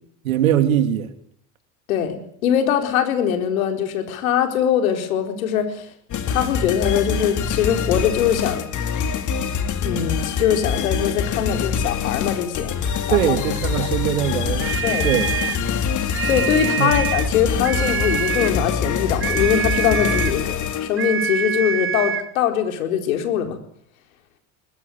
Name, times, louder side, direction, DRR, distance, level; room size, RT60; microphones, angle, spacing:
voice 1, 0.2-1.1 13.1-14.7 15.0-15.3 16.8-17.0, right 10 dB, 90° right, 3.0 m, -21 dB
voice 2, 1.9-5.9 6.3-8.6 9.8-12.7 13.1-13.4 14.8-15.1 16.2-23.6, left 9 dB, 85° left, 4.4 m, -22 dB
sound 1, 6.1-21.2, left 6 dB, 45° left, 4.0 m, -25 dB
sound 2, 14.6-15.7 16.1-17.4 17.6-18.6 19.2-20.4 21.0-22.3, right 8 dB, 30° right, 1.7 m, -26 dB
22.0 x 21.5 x 9.3 m
hypercardioid pair, 80°, 40 cm